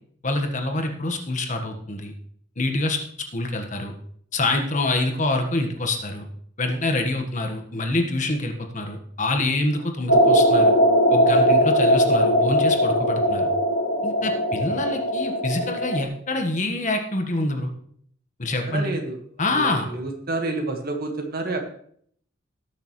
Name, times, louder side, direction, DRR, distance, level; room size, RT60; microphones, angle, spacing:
voice 1, 0.2-2.1 2.6-3.0 3.3-3.9 4.3-6.3 6.6-10.8 11.1-13.5 14.0-17.7 18.4-18.9 19.4-19.9, left 2 dB, 40° left, 4 dB, 1.4 m, -26 dB
sound 1, 10.1-16.0, equal, 85° left, 1.7 m, -19 dB
voice 2, 18.7-19.2 19.5-21.7, right 2 dB, 50° right, 3 dB, 1.6 m, -29 dB
18.5 x 6.6 x 3.2 m, 0.62 s
head